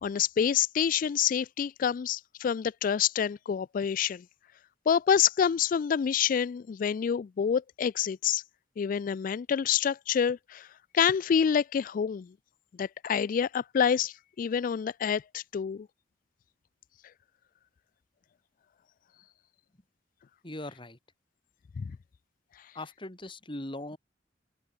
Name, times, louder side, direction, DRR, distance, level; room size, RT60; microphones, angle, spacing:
voice 1, 0.0-4.2 4.9-8.4 8.8-10.7 10.9-12.3 12.8-15.9 21.8-21.9, left 8 dB, 50° left, 0.3 m, -27 dB
voice 2, 20.4-21.0 22.7-24.0, left 1 dB, 30° left, 2.9 m, -39 dB
open air
head